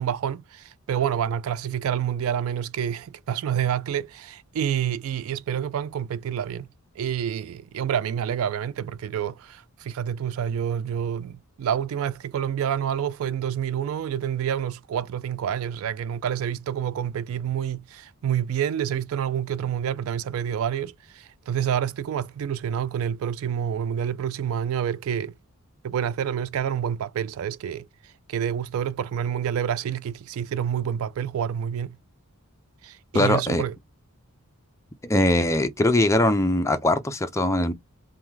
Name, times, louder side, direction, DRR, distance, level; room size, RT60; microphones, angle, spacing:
voice 1, 0.0-6.7 7.0-25.3 25.8-27.9 28.3-32.0 32.8-33.7, right 9 dB, 65° right, 0.3 m, -28 dB
voice 2, 33.1-33.6 35.0-37.7, left 1 dB, 15° left, 0.5 m, -21 dB
3.8 x 2.3 x 4.5 m
head